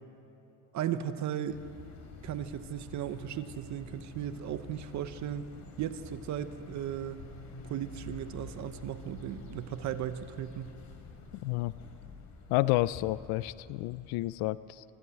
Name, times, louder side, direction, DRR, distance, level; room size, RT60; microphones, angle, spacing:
voice 1, 0.7-1.6 2.2-5.5 5.8-7.3 7.6-10.7, right 10 dB, 40° right, 11 dB, 0.8 m, -36 dB
sound 1, 1.5-14.4, left 4 dB, 40° left, 3.0 m, -49 dB
voice 2, 11.4-11.7 12.5-14.8, left 18 dB, 55° left, 17 dB, 0.5 m, -30 dB
25.0 x 14.0 x 8.3 m, 3.0 s
cardioid pair, 150°, 45 cm